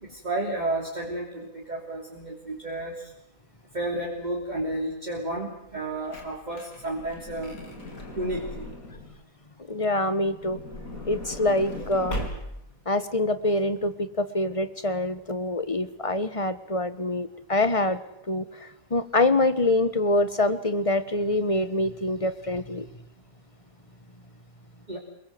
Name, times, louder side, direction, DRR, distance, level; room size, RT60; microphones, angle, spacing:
voice 1, 0.0-3.1 3.7-7.6 8.1-8.7 24.9-25.0, right 1 dB, 30° right, -2 dB, 3.4 m, -32 dB
Truck / Door, 5.7-9.2 10.3-12.8 13.5-13.6 13.8-13.9, left 1 dB, 75° left, 4.3 m, -38 dB
voice 2, 9.7-10.6 11.1-12.2 12.9-18.0 18.3-22.9, left 2 dB, 25° left, 13 dB, 1.3 m, -25 dB
26.5 x 22.5 x 7.8 m, 0.80 s
omnidirectional pair, 1.5 m